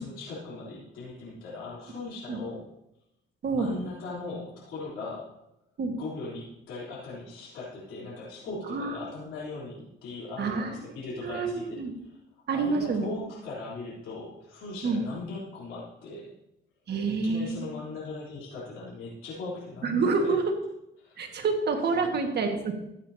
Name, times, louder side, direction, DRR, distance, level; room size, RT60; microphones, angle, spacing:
voice 1, 0.0-2.7 3.5-5.3 6.0-12.2 12.5-16.3 17.1-20.4 21.0-21.4 21.9-22.1, left 3 dB, 80° left, -7 dB, 3.5 m, -39 dB
voice 2, 10.4-10.8 11.2-11.9 12.5-13.1 14.8-15.0 16.9-17.7 19.8-20.4 21.2-22.7, right 4 dB, 55° right, 4 dB, 1.7 m, -27 dB
14.0 x 8.7 x 2.8 m, 0.84 s
cardioid pair, 90°, 20 cm